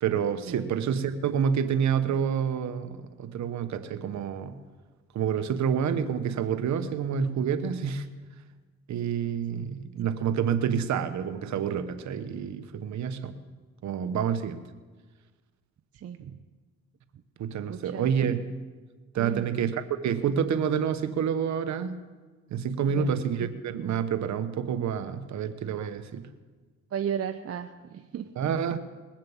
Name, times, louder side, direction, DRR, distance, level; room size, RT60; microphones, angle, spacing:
voice 1, 0.0-4.5 5.1-8.1 8.9-13.3 13.8-14.6 17.4-18.5 19.1-22.0 22.5-26.2 28.4-28.8, right 7 dB, 65° right, 10 dB, 1.1 m, -28 dB
voice 2, 15.9-16.4 17.7-18.1 19.2-19.5 22.9-23.2 26.9-28.3, right 8 dB, 50° right, 7 dB, 0.7 m, -35 dB
20.5 x 7.5 x 7.2 m, 1.4 s
cardioid pair, 90°, 30 cm